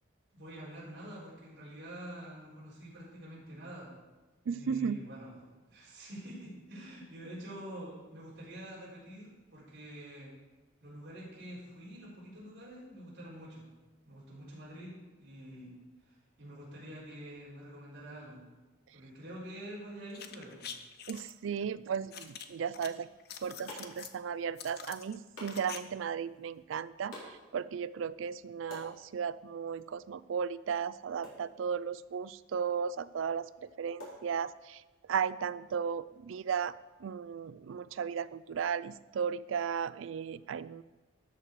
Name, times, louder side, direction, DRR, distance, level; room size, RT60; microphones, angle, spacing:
voice 1, 0.3-3.9 4.4-10.4 10.8-13.7 14.1-15.8 16.1-18.4 18.9-20.7, right 1 dB, 60° right, -7 dB, 3.9 m, -47 dB
voice 2, 4.5-5.0 21.1-23.1 23.4-34.8 35.1-36.7 37.0-40.8, right 7 dB, 80° right, 17 dB, 0.4 m, -35 dB
sound 1, 20.1-21.3 22.1-22.9 23.2-24.2 24.6-25.8 26.0-26.1, left 8 dB, 55° left, 0.7 m, -45 dB
sound 2, 23.0-34.9, left 1 dB, 75° left, 3.9 m, -54 dB
13.0 x 6.7 x 4.7 m, 1.2 s
head